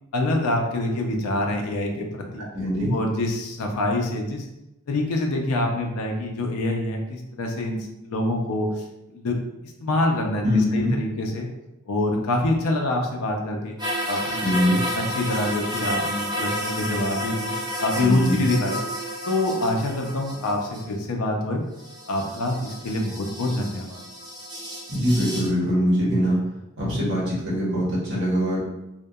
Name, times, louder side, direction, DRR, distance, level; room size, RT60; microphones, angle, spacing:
voice 1, 0.1-2.5 2.9-4.5 4.9-9.4 9.8-10.4 10.7-11.5 11.9-13.8 14.1-14.5 15.0-18.8 19.3-21.6 22.1-24.0, left 1 dB, 90° left, 2 dB, 0.4 m, -26 dB
voice 2, 2.5-3.0 10.4-11.0 14.4-14.8 18.0-18.4 24.9-26.4 26.8-28.6, equal, 55° right, -6 dB, 0.8 m, -22 dB
sound 1, 13.8-20.9 21.8-25.5, equal, 20° right, 0.5 m, -31 dB
2.7 x 2.1 x 2.2 m, 0.92 s
head